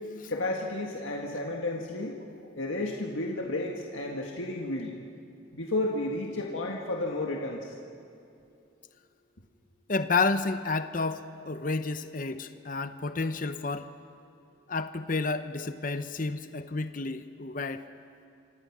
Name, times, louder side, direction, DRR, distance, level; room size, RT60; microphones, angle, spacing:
voice 1, 0.3-2.2 2.6-5.0 5.5-7.7, left 2 dB, 85° left, 0 dB, 1.8 m, -32 dB
voice 2, 9.9-13.9 14.7-17.8, left 3 dB, 45° left, 10 dB, 0.8 m, -30 dB
28.5 x 25.5 x 6.1 m, 2.6 s
head